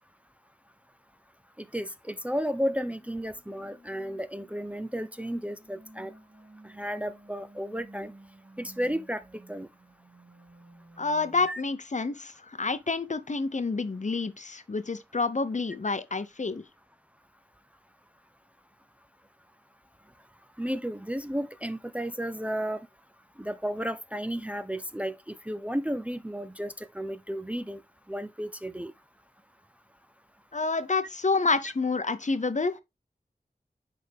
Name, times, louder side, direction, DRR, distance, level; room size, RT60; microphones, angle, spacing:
voice 1, 1.6-6.1 6.6-8.1 8.6-9.2 9.5-9.7 11.5-11.6 20.6-22.9 23.4-27.8 28.1-28.9, equal, 10° right, 0.6 m, -33 dB
sound 1, 3.0-11.5, right 2 dB, 65° right, 3.3 m, -54 dB
voice 2, 11.0-16.6 30.5-32.8, left 3 dB, 50° left, 0.9 m, -28 dB
10.5 x 3.7 x 3.5 m
cardioid pair, 45°, 16 cm